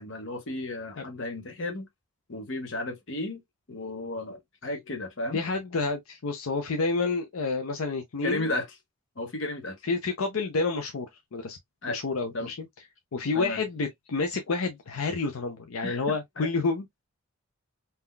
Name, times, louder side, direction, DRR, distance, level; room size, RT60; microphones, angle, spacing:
voice 1, 0.0-1.9 2.3-3.4 3.7-5.4 8.2-8.7 9.2-9.8 11.8-12.0 12.3-12.5 13.3-13.6 15.8-16.5, left 2 dB, 60° left, 0.9 m, -34 dB
voice 2, 5.3-8.5 9.9-11.6 11.9-12.6 13.1-16.9, left 3 dB, 80° left, 0.5 m, -29 dB
3.7 x 2.8 x 2.2 m
head